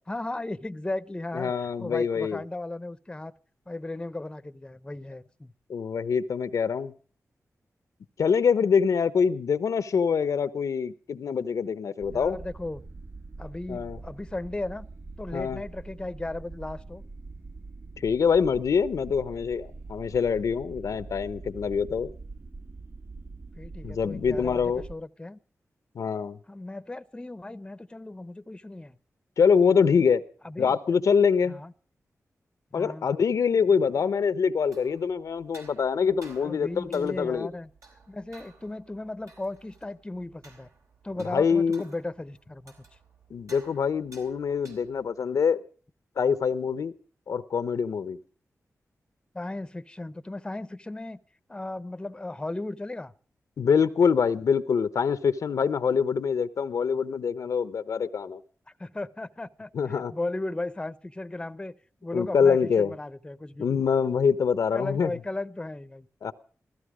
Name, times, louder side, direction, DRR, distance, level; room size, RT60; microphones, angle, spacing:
voice 1, 0.1-3.3 3.7-5.5 12.1-12.8 13.4-14.9 15.2-17.0 23.6-25.4 26.5-29.0 30.4-30.8 31.5-31.7 32.8-33.1 36.4-37.7 38.1-40.7 41.0-42.7 49.3-51.2 51.5-53.1 58.8-63.7 64.7-66.1, left 2 dB, 15° left, 0.7 m, -36 dB
voice 2, 1.3-2.4 5.7-6.9 8.2-12.4 13.7-14.0 15.3-15.6 18.0-22.1 23.8-24.8 25.9-26.4 29.4-30.2 30.6-31.6 32.7-37.5 41.2-41.8 43.3-45.6 46.2-46.9 47.3-48.2 53.6-58.4 59.7-60.1 62.1-62.9 63.6-65.1 66.2-66.3, left 6 dB, 80° left, 0.8 m, -25 dB
sound 1, 12.0-24.9, right 3 dB, 40° right, 0.9 m, -43 dB
sound 2, 34.5-45.2, right 3 dB, 75° right, 4.2 m, -55 dB
15.5 x 14.5 x 4.9 m
wide cardioid pair, 105°, 6 cm